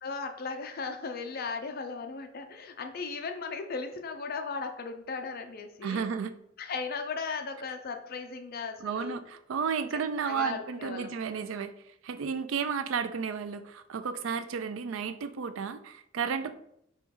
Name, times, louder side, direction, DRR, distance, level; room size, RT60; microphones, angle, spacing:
voice 1, 0.0-6.1 6.6-9.2 10.3-11.1 16.4-16.5, left 4 dB, 50° left, 5 dB, 0.5 m, -37 dB
voice 2, 5.8-6.3 8.8-11.7 12.0-16.5, right 6 dB, 75° right, 11 dB, 0.4 m, -32 dB
4.5 x 3.0 x 3.6 m, 0.74 s
head